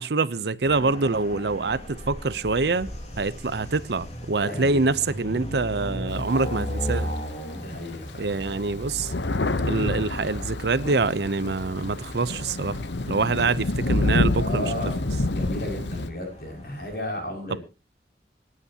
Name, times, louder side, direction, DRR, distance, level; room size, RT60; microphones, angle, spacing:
voice 1, 0.0-2.9 3.2-7.1 8.2-9.1 9.6-12.8 13.1-14.7 17.5-17.6, right 3 dB, 70° right, 0.7 m, -25 dB
sound 1, 0.6-17.0, equal, 35° left, 3.1 m, -37 dB
voice 2, 4.4-4.9 7.5-8.4 13.1-13.6 14.4-14.9 15.3-17.6, left 1 dB, 55° left, 5.8 m, -34 dB
Thunder, 6.1-7.4 7.9-8.0 8.3-16.1, left 2 dB, 85° left, 0.9 m, -28 dB
26.0 x 9.5 x 2.8 m
head